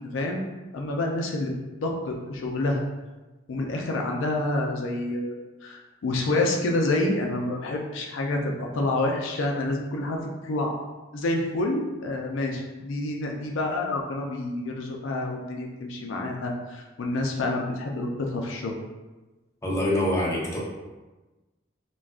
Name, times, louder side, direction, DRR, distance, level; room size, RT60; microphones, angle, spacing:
voice 1, 0.1-0.5 0.7-2.8 3.5-5.4 5.6-10.2 10.4-10.9 11.1-18.7, left 2 dB, 70° left, 1 dB, 0.4 m, -28 dB
voice 2, 19.6-20.6, left 1 dB, 15° left, -5 dB, 0.6 m, -25 dB
2.4 x 2.2 x 3.4 m, 1.2 s
head